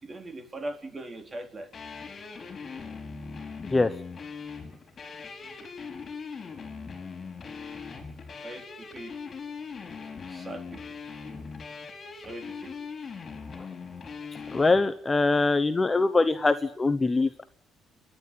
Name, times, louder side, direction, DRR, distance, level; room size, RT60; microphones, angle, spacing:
voice 1, 0.0-1.7 8.4-9.1 10.3-10.8 12.2-12.7 14.2-14.3, right 1 dB, 25° right, 6 dB, 3.9 m, -40 dB
sound 1, 1.7-14.8, left 5 dB, 35° left, 5.3 m, -40 dB
voice 2, 14.5-17.4, left 3 dB, 20° left, 10 dB, 1.0 m, -23 dB
30.0 x 11.5 x 9.7 m, 0.62 s
cardioid pair, 115°, 0 cm